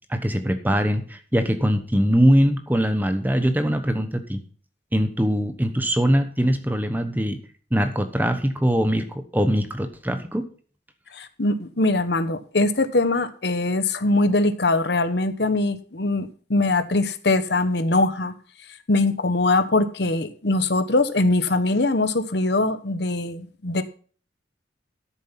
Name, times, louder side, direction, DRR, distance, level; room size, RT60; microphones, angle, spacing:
voice 1, 0.1-4.4 4.9-7.4 7.7-10.4, equal, 10° right, 8 dB, 1.0 m, -22 dB
voice 2, 11.1-18.3 18.9-23.8, left 2 dB, 60° left, 11 dB, 1.1 m, -22 dB
13.0 x 7.1 x 5.8 m, 0.42 s
head